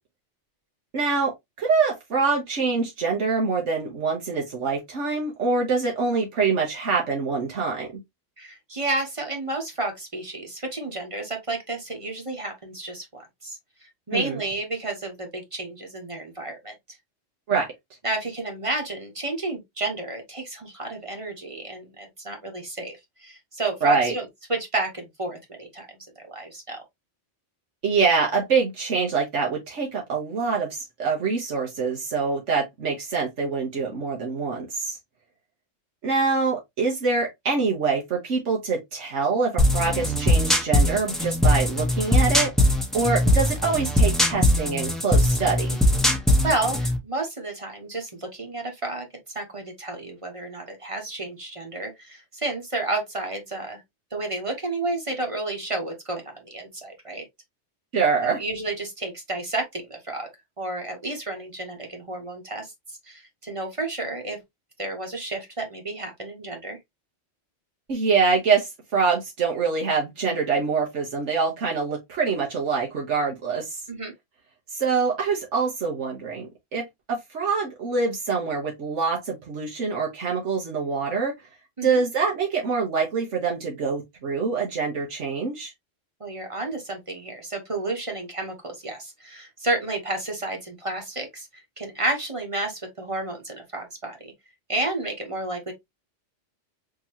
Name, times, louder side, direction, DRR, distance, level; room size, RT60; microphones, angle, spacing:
voice 1, 0.9-1.3 1.6-7.9 14.1-14.4 17.5-17.7 23.8-24.1 27.8-35.0 36.0-42.5 42.9-45.8 57.9-58.4 67.9-73.8 74.7-76.8 77.1-81.3 81.8-85.7, right 4 dB, 80° right, 1.4 m, -25 dB
voice 2, 8.4-13.6 14.1-16.7 18.0-24.2 24.5-25.9 26.3-26.8 46.1-49.1 49.3-53.8 54.1-57.2 58.2-60.3 60.6-62.7 63.0-64.4 64.8-66.8 73.9-74.1 81.8-82.0 86.2-94.3 94.7-95.7, right 2 dB, 30° right, 1.1 m, -31 dB
sound 1, 39.6-47.0, left 1 dB, ahead, 0.8 m, -21 dB
4.4 x 2.9 x 2.8 m
omnidirectional pair, 1.2 m